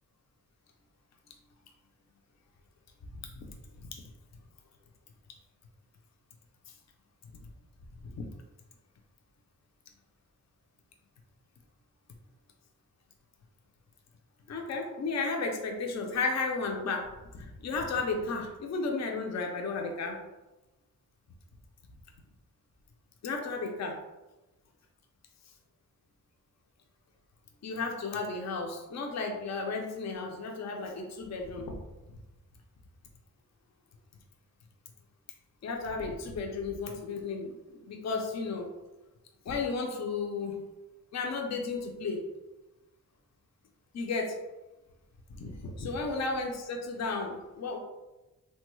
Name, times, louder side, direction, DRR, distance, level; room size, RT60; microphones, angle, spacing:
voice 1, 14.5-20.2 23.2-24.0 27.6-31.8 35.6-38.7 39.5-40.6 41.1-42.3 43.9-44.4 45.3-47.8, left 4 dB, 50° left, 2 dB, 0.4 m, -33 dB
3.3 x 2.2 x 3.0 m, 1.1 s
wide cardioid pair, 175°, 34 cm